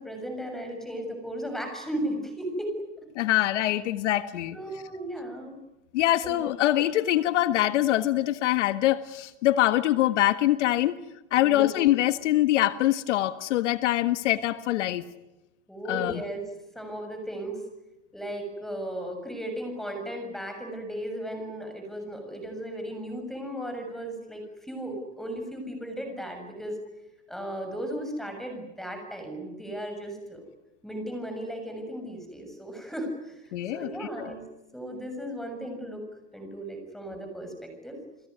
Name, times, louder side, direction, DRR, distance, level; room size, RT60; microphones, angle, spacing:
voice 1, 0.0-2.7 4.5-5.6 6.2-6.4 11.4-11.7 15.7-16.4 16.7-17.6 18.1-26.8 27.3-30.4 30.8-34.4 34.7-36.0 36.3-38.0, right 1 dB, ahead, 4 dB, 6.9 m, -36 dB
voice 2, 3.2-4.6 5.9-11.0 11.3-15.0 15.9-16.2 33.5-34.3, left 14 dB, 85° left, 11 dB, 1.7 m, -24 dB
30.0 x 20.0 x 9.7 m, 0.93 s
supercardioid pair, 160°, 35 cm